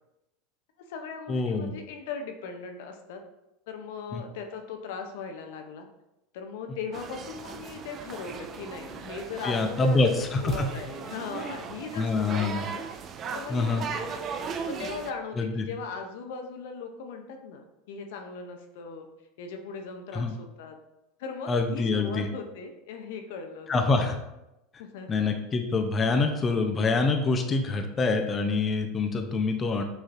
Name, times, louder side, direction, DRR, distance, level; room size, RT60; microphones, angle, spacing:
voice 1, 0.8-3.2 3.7-5.9 6.3-10.0 10.4-14.3 14.7-19.1 19.4-20.8 21.2-24.1 24.8-25.2, left 5 dB, 70° left, 5 dB, 0.6 m, -39 dB
voice 2, 1.3-1.7 4.1-4.2 9.4-10.7 12.0-12.6 13.5-13.8 15.4-15.7 20.1-20.3 21.5-22.3 23.7-24.2 25.1-29.8, left 3 dB, 25° left, 5 dB, 0.5 m, -25 dB
sound 1, 6.9-15.1, right 6 dB, 40° right, 0.4 m, -38 dB
6.1 x 3.1 x 2.5 m, 0.92 s
hypercardioid pair, 95°, 0 cm